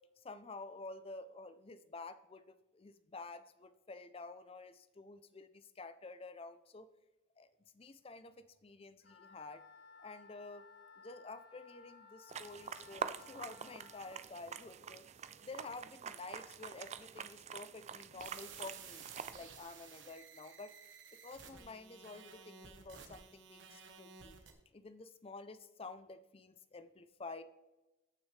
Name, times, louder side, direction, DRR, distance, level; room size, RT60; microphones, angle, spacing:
voice 1, 0.2-6.9 7.4-7.5 7.7-9.6 10.0-10.6 11.0-15.0 15.4-19.1 19.3-20.7 21.2-24.4 24.7-27.4, left 3 dB, 30° left, 12 dB, 0.5 m, -50 dB
Wind instrument woodwind instrument, 9.0-14.2, left 5 dB, 55° left, 1.3 m, -59 dB
sound 1, 12.3-19.4, right 7 dB, 35° right, 0.4 m, -46 dB
sound 2, 18.2-24.5, right 6 dB, 65° right, 1.3 m, -54 dB
14.5 x 6.2 x 3.3 m, 1.0 s
head